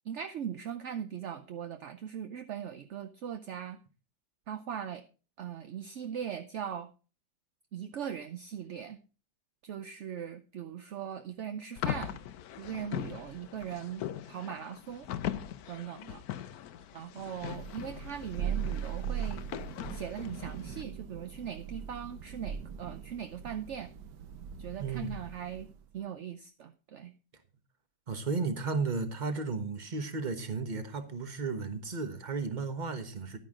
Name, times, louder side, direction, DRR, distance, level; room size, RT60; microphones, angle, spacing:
voice 1, 0.0-3.8 4.5-5.0 5.4-6.9 7.7-9.0 9.6-12.2 12.6-15.1 15.7-16.2 16.9-19.4 19.9-23.9 24.6-25.7 25.9-27.1, right 8 dB, 60° right, 0.8 m, -40 dB
sound 1, 11.8-20.8, left 10 dB, 70° left, 1.1 m, -40 dB
Thunder, 17.4-25.8, right 8 dB, 85° right, 1.6 m, -40 dB
voice 2, 24.8-25.1 28.1-33.4, right 4 dB, 30° right, 1.2 m, -34 dB
11.0 x 9.8 x 3.7 m
omnidirectional pair, 1.8 m